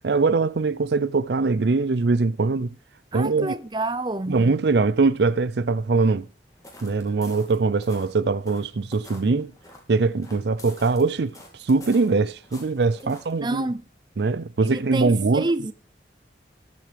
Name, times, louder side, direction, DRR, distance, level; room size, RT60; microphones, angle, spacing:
voice 1, 0.0-2.7 3.1-3.5 4.3-6.3 6.8-9.5 9.9-13.7 14.2-15.5, right 3 dB, 65° right, 0.5 m, -22 dB
voice 2, 3.1-4.4 13.0-13.8 14.6-15.7, right 2 dB, 25° right, 0.7 m, -28 dB
sound 1, 6.5-13.5, left 1 dB, 20° left, 2.9 m, -48 dB
19.5 x 7.7 x 3.4 m
head